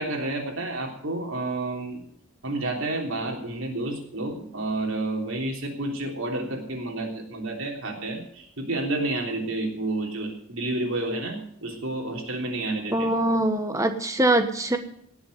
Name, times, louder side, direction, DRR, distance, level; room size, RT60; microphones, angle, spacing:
voice 1, 0.0-2.0 2.4-13.1, right 2 dB, 65° right, 1 dB, 3.5 m, -30 dB
voice 2, 12.9-14.8, right 1 dB, 15° right, 7 dB, 1.2 m, -23 dB
18.5 x 7.2 x 8.0 m, 0.68 s
head